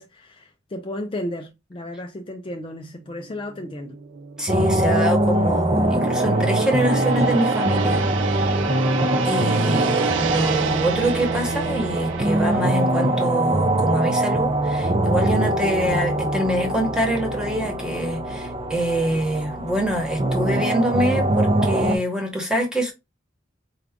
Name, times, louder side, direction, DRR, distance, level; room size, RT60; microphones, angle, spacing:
voice 1, 0.0-4.0, left 1 dB, 30° left, 0.4 m, -33 dB
Gong, 3.1-15.5 15.9-16.1, right 6 dB, 80° right, 0.5 m, -32 dB
voice 2, 4.4-8.0 8.3-8.5 9.2-22.9, right 1 dB, 5° right, 1.1 m, -25 dB
sound 1, 4.5-22.0, right 1 dB, 30° right, 0.5 m, -22 dB
4.7 x 2.4 x 3.5 m
head